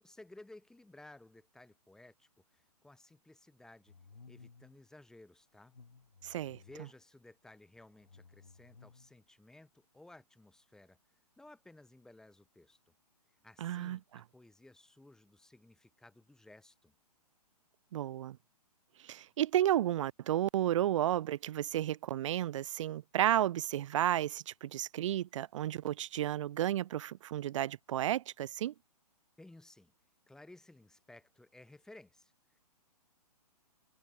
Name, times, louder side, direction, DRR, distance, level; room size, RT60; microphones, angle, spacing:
voice 1, 0.0-3.9 4.3-5.7 6.3-11.0 11.4-12.9 13.4-16.9 29.4-29.9 30.3-32.6, left 2 dB, 5° left, 1.0 m, -57 dB
sound 1, 3.9-4.8 5.5-6.9 7.8-9.2, left 4 dB, 85° left, 3.2 m, -58 dB
voice 2, 6.2-6.6 13.6-14.0 17.9-18.4 19.0-28.7, right 12 dB, 50° right, 0.4 m, -32 dB
hypercardioid pair, 130°, 20 cm